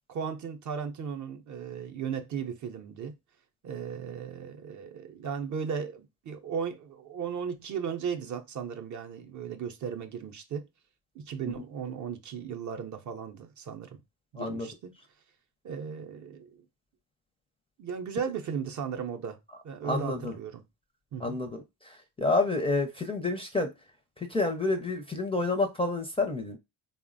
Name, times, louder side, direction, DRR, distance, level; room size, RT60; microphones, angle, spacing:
voice 1, 0.1-3.2 3.6-10.7 11.2-14.0 14.3-14.9 15.6-16.6 17.8-19.4 19.6-20.6 21.1-21.4, right 7 dB, 45° right, 0.5 m, -36 dB
voice 2, 14.4-14.7 19.8-20.3 21.2-23.7 24.2-26.6, left 3 dB, 15° left, 0.4 m, -29 dB
3.2 x 2.0 x 2.4 m
cardioid pair, 100°, 42 cm